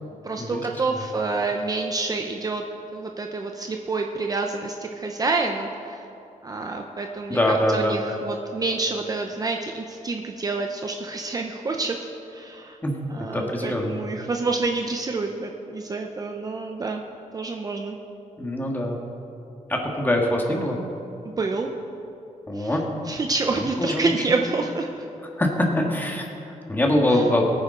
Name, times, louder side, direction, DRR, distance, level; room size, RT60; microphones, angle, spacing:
voice 1, 0.2-2.6 2.9-6.0 6.4-12.0 12.3-12.8 13.1-17.0 17.3-18.0 21.2-21.7 22.5-22.7 23.1-24.9 27.1-27.2, right 3 dB, 25° right, 3 dB, 0.7 m, -28 dB
voice 2, 7.3-8.0 12.8-13.0 13.3-14.0 18.4-19.0 19.7-20.8 22.5-22.9 23.5-24.1 25.4-27.4, left 1 dB, 15° left, 0 dB, 1.7 m, -23 dB
22.0 x 9.6 x 3.8 m, 2.8 s
wide cardioid pair, 160°, 14 cm